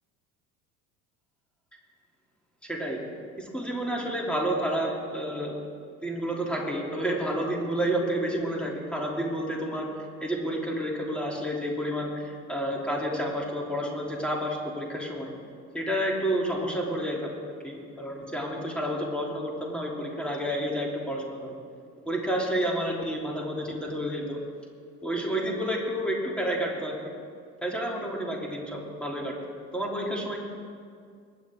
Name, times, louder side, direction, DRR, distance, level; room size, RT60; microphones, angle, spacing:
voice 1, 2.6-3.0 3.4-5.6 6.0-9.9 10.2-15.3 15.7-17.3 17.6-21.5 22.1-24.4 25.0-27.1 27.6-29.3 29.7-30.4, equal, ahead, -2 dB, 3.1 m, -30 dB
21.5 x 9.8 x 3.7 m, 2.1 s
figure-of-eight pair, 65°, 44 cm